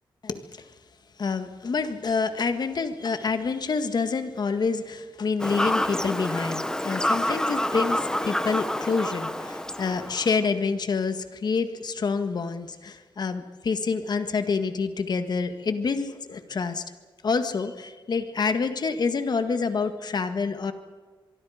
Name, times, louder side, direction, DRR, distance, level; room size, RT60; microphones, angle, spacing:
voice 1, 0.2-0.7 1.2-16.8 17.2-20.7, left 4 dB, 50° left, 9 dB, 1.8 m, -27 dB
Fowl / Bird vocalization bird call bird song, 5.4-10.4, left 1 dB, 10° left, 1.1 m, -28 dB
25.0 x 23.5 x 5.1 m, 1.4 s
wide cardioid pair, 140°, 9 cm